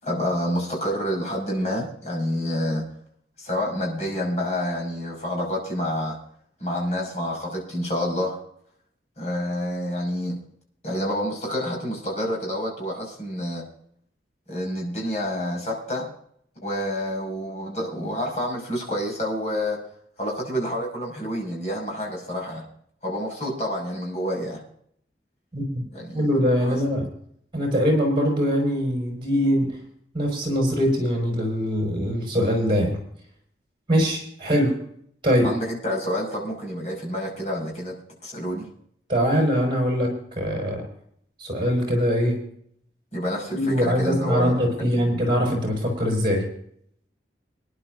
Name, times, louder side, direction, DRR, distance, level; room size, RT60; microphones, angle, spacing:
voice 1, 0.0-2.8 3.4-6.2 6.6-8.4 9.2-10.4 10.8-13.6 14.5-16.1 16.6-19.8 20.2-22.6 23.0-24.6 25.9-26.3 26.6-26.8 35.4-38.0 38.2-38.7 43.1-44.6 44.9-45.1, equal, 40° left, -1 dB, 5.9 m, -28 dB
voice 2, 25.5-25.8 26.1-27.1 27.5-29.7 30.1-33.0 33.9-34.7 35.2-35.5 39.1-40.1 40.4-40.8 41.4-42.4 43.5-46.5, equal, 30° right, 0 dB, 5.5 m, -22 dB
26.0 x 11.0 x 2.7 m, 0.66 s
head